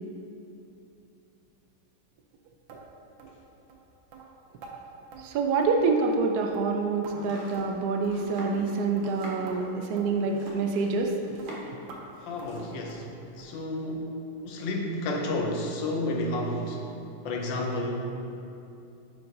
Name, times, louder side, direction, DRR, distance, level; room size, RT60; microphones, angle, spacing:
sound 1, 2.7-2.8 3.2-3.4 3.7-3.8 4.1-4.3 4.6-4.8 5.1-5.3 5.6-5.9 6.1-6.3 6.5-7.2 7.5-7.8 8.0-8.2 8.5-8.7 9.0-9.1 9.5-9.6 10.0-10.1 10.5-10.6 11.0-11.1 11.4-11.5 11.9-12.0 12.4-12.6 12.9-13.1 13.4-13.6 13.9-14.0 14.4-14.5 14.9-15.0, right 5 dB, 90° right, 1.5 m, -47 dB
voice 1, 5.2-11.1, right 4 dB, 75° right, 3 dB, 0.9 m, -26 dB
Domestic sounds home sounds, 7.1-11.9 12.1-12.8, right 1 dB, 40° right, 0.8 m, -44 dB
voice 2, 12.2-13.1 13.4-14.2 14.4-16.8 17.2-17.9, left 1 dB, 75° left, 1 dB, 1.4 m, -31 dB
9.2 x 4.9 x 2.6 m, 2.7 s
omnidirectional pair, 2.1 m